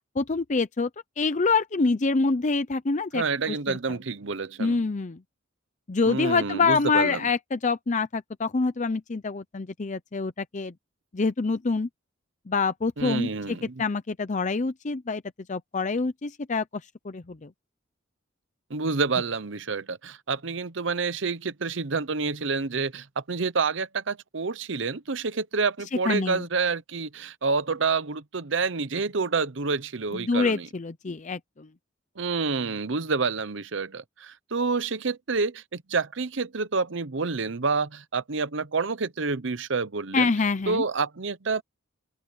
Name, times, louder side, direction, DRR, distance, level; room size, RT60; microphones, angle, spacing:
voice 1, 0.2-0.9 1.2-3.8 4.6-5.2 5.9-10.7 11.1-11.9 12.5-13.3 13.8-15.2 15.5-16.6 17.0-17.5 26.1-26.4 30.1-31.7 40.1-40.8, left 4 dB, 40° left, 0.6 m, -26 dB
voice 2, 3.1-4.8 6.0-7.2 13.0-13.8 18.7-30.7 32.2-40.3 40.7-41.6, right 4 dB, 65° right, 0.9 m, -28 dB
open air
head